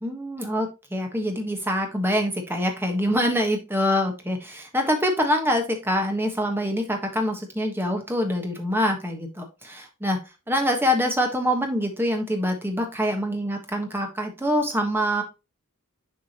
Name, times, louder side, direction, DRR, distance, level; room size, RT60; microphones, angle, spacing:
voice 1, 0.0-10.2 10.5-15.2, equal, 10° right, 4 dB, 1.3 m, -25 dB
7.4 x 4.8 x 2.9 m, 0.27 s
head